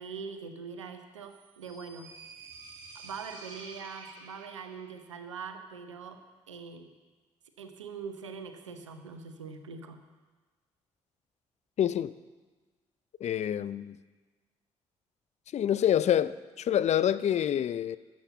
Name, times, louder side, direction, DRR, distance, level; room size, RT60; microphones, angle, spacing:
voice 1, 0.0-2.1 2.9-6.2 6.5-6.9 7.6-10.0, right 5 dB, 90° right, 0.7 m, -43 dB
sound 1, 1.2-5.0, right 3 dB, 65° right, 1.7 m, -49 dB
voice 2, 11.8-12.1 13.2-14.0 15.5-18.0, left 10 dB, 45° left, 0.5 m, -27 dB
12.0 x 8.4 x 7.0 m
figure-of-eight pair, 45°, 15 cm